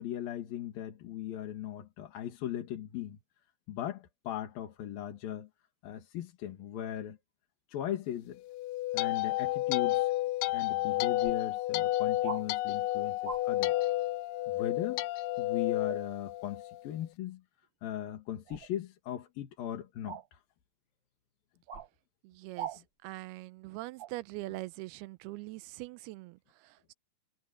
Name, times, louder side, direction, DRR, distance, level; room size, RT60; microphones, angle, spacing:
voice 1, 0.0-3.2 3.7-5.5 5.8-7.2 7.7-8.4 8.9-10.1 10.5-13.7 14.5-15.0 15.4-17.4 17.8-20.4, left 11 dB, 70° left, 3.5 m, -38 dB
sound 1, 8.4-16.8, left 16 dB, 85° left, 1.9 m, -31 dB
sound 2, 10.5-10.6 11.2-11.4 12.2-12.4 13.2-13.4 15.9-16.1 18.5-18.7 20.0-20.3 21.7-21.9 22.6-22.8 24.0-24.1, right 7 dB, 30° right, 4.4 m, -41 dB
voice 2, 22.2-26.9, right 19 dB, 85° right, 2.6 m, -43 dB
omnidirectional pair, 4.5 m